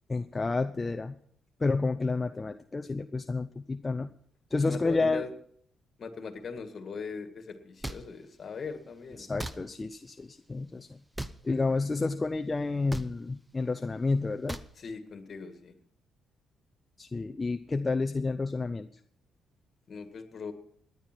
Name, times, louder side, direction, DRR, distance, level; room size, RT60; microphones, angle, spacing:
voice 1, 0.1-1.2 1.6-4.1 4.5-5.2 9.2-11.0 11.4-14.6 17.0-18.9, left 3 dB, 25° left, 6 dB, 0.6 m, -30 dB
voice 2, 4.6-5.3 6.0-9.3 14.8-15.7 19.9-20.5, left 5 dB, 50° left, 7 dB, 2.0 m, -40 dB
sound 1, 7.8-8.0 9.4-9.6 11.1-11.4 12.9-13.1 14.5-14.7, right 1 dB, 5° right, 0.8 m, -36 dB
18.5 x 10.5 x 4.5 m, 0.63 s
cardioid pair, 90°, 0 cm